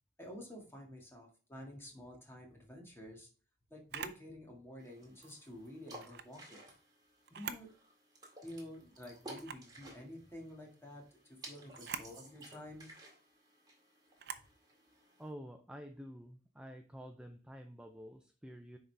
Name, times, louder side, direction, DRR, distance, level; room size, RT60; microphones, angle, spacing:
voice 1, 0.2-3.3 3.7-6.7 7.3-7.7 8.4-11.0 11.3-12.9, left 1 dB, 15° left, 0 dB, 1.8 m, -50 dB
Camera, 3.9-4.2 6.0-6.3 7.2-7.7 8.2-8.3 9.3-9.7 11.7-12.1 14.2-14.5, right 7 dB, 60° right, 0.6 m, -44 dB
sound 1, 4.8-15.3, right 1 dB, 20° right, 2.0 m, -56 dB
voice 2, 15.2-18.8, equal, 5° right, 4 dB, 0.5 m, -49 dB
9.9 x 4.0 x 3.4 m, 0.38 s
head